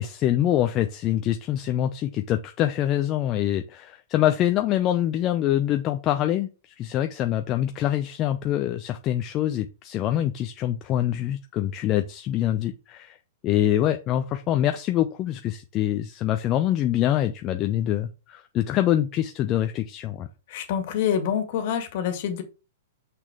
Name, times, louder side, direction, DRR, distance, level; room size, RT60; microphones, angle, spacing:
voice 1, 0.0-13.2 13.4-20.3, left 12 dB, 35° left, 7 dB, 0.6 m, -25 dB
voice 2, 20.5-22.4, left 8 dB, 55° left, 7 dB, 2.0 m, -26 dB
6.1 x 6.1 x 3.5 m, 0.30 s
hypercardioid pair, 120°, 0 cm